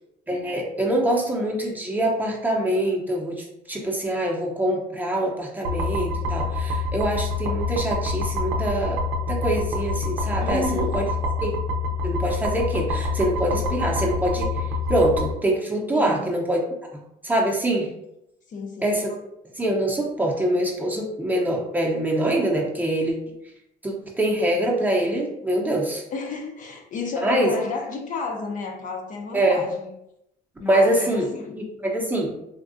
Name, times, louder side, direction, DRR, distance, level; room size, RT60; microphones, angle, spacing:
voice 1, 0.3-9.0 9.3-11.0 11.4-11.5 12.0-14.5 14.9-16.6 17.2-17.9 18.8-19.1 19.6-23.1 23.8-26.0 27.2-27.5 29.3-29.6 30.7-32.3, right 1 dB, 10° right, -1 dB, 0.7 m, -24 dB
sound 1, 5.6-15.3, left 3 dB, 90° right, 0.5 m, -26 dB
voice 2, 10.4-11.0 15.9-16.3 18.5-19.0 26.1-29.9 30.6-31.6, left 4 dB, 50° left, 2 dB, 0.6 m, -31 dB
3.5 x 2.2 x 2.6 m, 0.80 s
cardioid pair, 110°, 17 cm